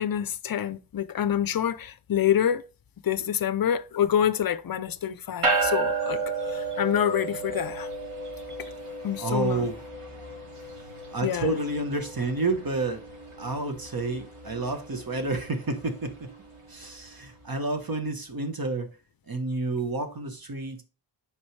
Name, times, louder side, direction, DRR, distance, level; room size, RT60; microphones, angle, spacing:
voice 1, 0.0-2.6 3.0-7.9 9.0-9.6 11.2-11.5, left 9 dB, 45° left, 0.5 m, -27 dB
sound 1, 5.4-17.0, right 3 dB, 85° right, 2.4 m, -33 dB
voice 2, 9.2-9.8 11.1-13.0 13.4-16.3 16.7-18.9 19.3-20.8, right 2 dB, 45° right, 1.1 m, -30 dB
8.6 x 4.8 x 3.2 m
wide cardioid pair, 110°, 50 cm